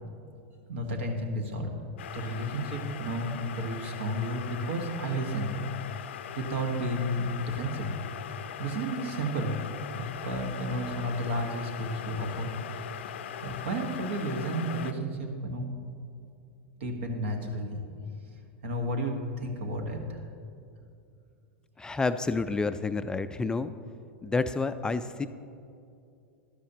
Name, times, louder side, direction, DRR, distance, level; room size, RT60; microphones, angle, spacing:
voice 1, 0.7-1.7 2.1-5.5 6.4-7.9 8.6-9.6 9.9-12.9 13.4-15.7 16.8-17.9 18.6-20.2, right 1 dB, 70° right, 4 dB, 1.5 m, -32 dB
sound 1, 2.0-14.9, left 9 dB, 70° left, 0.5 m, -40 dB
voice 2, 21.8-23.7 24.2-25.3, left 3 dB, 10° left, 11 dB, 0.3 m, -29 dB
12.5 x 11.5 x 2.9 m, 2.5 s
hypercardioid pair, 100°, 7 cm